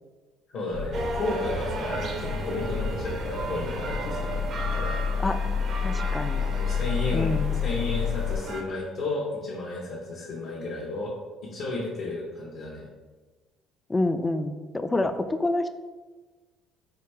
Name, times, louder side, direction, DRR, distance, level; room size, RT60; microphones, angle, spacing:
voice 1, 0.5-4.4 4.7-5.0 6.6-11.1 11.4-12.9, left 2 dB, 65° left, -5 dB, 1.0 m, -33 dB
sound 1, 0.7-8.4, left 6 dB, 85° left, 0.7 m, -30 dB
sound 2, 0.9-8.6, right 2 dB, 55° right, 0.6 m, -35 dB
voice 2, 5.8-6.5 7.1-7.5 13.9-15.7, left 2 dB, 15° left, 9 dB, 0.3 m, -27 dB
4.9 x 2.7 x 3.3 m, 1.3 s
cardioid pair, 95°, 0 cm